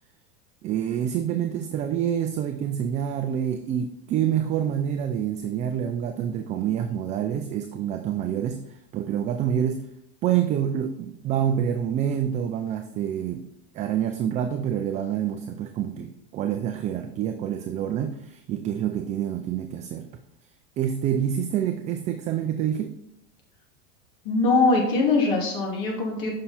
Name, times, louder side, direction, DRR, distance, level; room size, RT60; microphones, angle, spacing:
voice 1, 0.6-9.9 10.2-13.5 13.7-20.1 20.8-23.0, right 9 dB, 25° right, 6 dB, 0.3 m, -27 dB
voice 2, 24.2-26.3, left 3 dB, 55° left, -1 dB, 2.5 m, -22 dB
7.6 x 5.6 x 4.2 m, 0.78 s
supercardioid pair, 145°, 32 cm